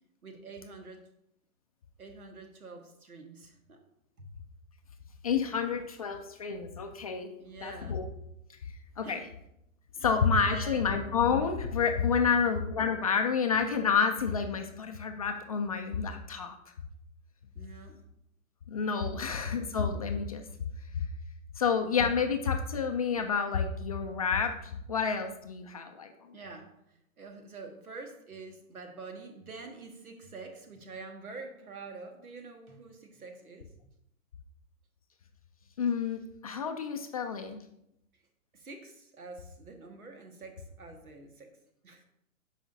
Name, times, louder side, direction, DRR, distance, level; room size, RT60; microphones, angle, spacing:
voice 1, 0.2-1.0 2.0-3.8 4.2-4.3 7.4-8.0 9.0-9.2 10.0-10.1 10.4-11.0 12.2-12.5 17.6-18.0 19.1-19.3 26.3-26.7 27.2-33.7 38.5-41.6 41.8-42.0, right 3 dB, 85° right, 5 dB, 1.7 m, -46 dB
voice 2, 5.2-7.3 7.6-8.1 9.0-9.2 10.0-16.6 18.7-20.4 20.9-21.0 21.6-26.1 35.8-37.6, left 6 dB, 30° left, 5 dB, 0.4 m, -29 dB
11.5 x 4.9 x 2.7 m, 0.79 s
hypercardioid pair, 135°, 42 cm